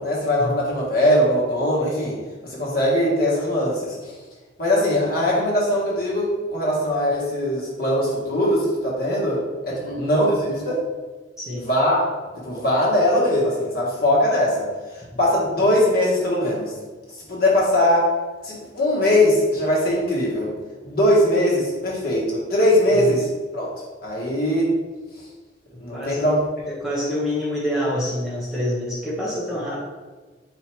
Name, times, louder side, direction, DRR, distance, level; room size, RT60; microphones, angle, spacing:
voice 1, 0.0-2.2 2.4-4.1 4.6-10.8 11.7-12.1 12.4-14.7 14.9-16.7 17.3-18.1 18.4-20.5 20.8-23.3 23.5-23.7 24.0-24.7 25.8-26.4, left 1 dB, 50° left, -5 dB, 1.3 m, -21 dB
voice 2, 9.7-10.0 11.4-11.7 23.0-23.1 25.9-26.3 26.7-29.8, equal, 5° right, -7 dB, 0.8 m, -27 dB
4.2 x 2.8 x 4.5 m, 1.3 s
head